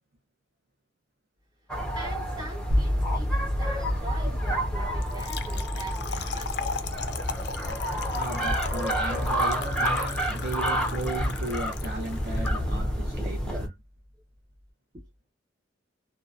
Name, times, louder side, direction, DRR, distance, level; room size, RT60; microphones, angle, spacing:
sound 1, 1.7-13.7, equal, 5° left, 0.5 m, -30 dB
voice 1, 1.9-6.9 14.9-15.0, right 1 dB, 20° right, 1.0 m, -43 dB
sound 2, 2.7-12.7, equal, 85° right, 0.8 m, -32 dB
Trickle dribble / Fill (with liquid), 5.0-12.5, left 6 dB, 55° left, 0.4 m, -37 dB
voice 2, 8.1-13.7, right 2 dB, 50° right, 0.6 m, -35 dB
2.6 x 2.1 x 2.3 m
head